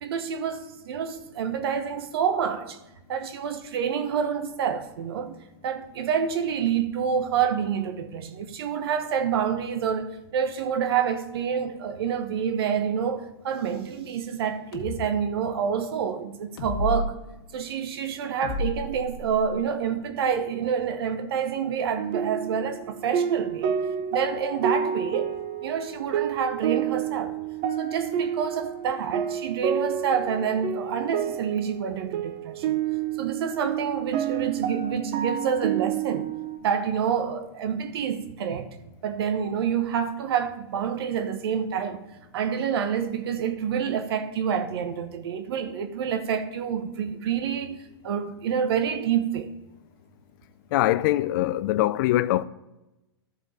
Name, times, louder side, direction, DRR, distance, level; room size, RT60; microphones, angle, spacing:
voice 1, 0.0-2.8 3.1-5.4 5.6-17.1 17.5-23.7 24.1-25.3 25.6-27.3 27.8-32.8 33.2-36.3 36.6-38.7 39.0-42.0 42.3-47.8 48.0-49.5, right 7 dB, 65° right, 1.0 m, -28 dB
sound 1, 14.7-15.0 16.6-17.1 18.4-19.6, left 1 dB, 65° left, 1.7 m, -30 dB
sound 2, 22.0-36.6, right 8 dB, 40° right, 0.6 m, -29 dB
voice 2, 50.7-52.4, left 15 dB, 50° left, 0.4 m, -23 dB
13.5 x 4.8 x 4.1 m
hypercardioid pair, 135°, 14 cm